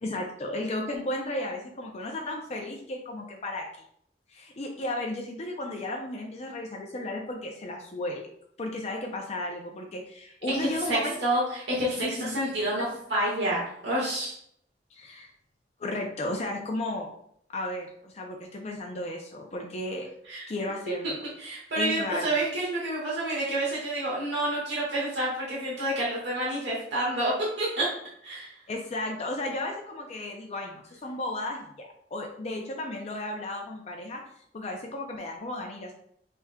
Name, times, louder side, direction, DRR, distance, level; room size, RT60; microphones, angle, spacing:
voice 1, 0.0-3.7 4.3-8.3 8.6-11.2 12.0-12.4 12.8-12.9 14.9-15.3 15.8-17.1 17.5-20.1 20.5-21.2 21.8-22.4 28.7-34.2 34.5-35.9, left 1 dB, 40° left, 1 dB, 0.5 m, -34 dB
voice 2, 10.5-14.3 20.3-20.4 21.0-21.1 21.4-27.3 27.6-27.9 28.2-28.5, right 1 dB, 80° right, -6 dB, 1.5 m, -29 dB
5.7 x 3.5 x 2.2 m, 0.69 s
head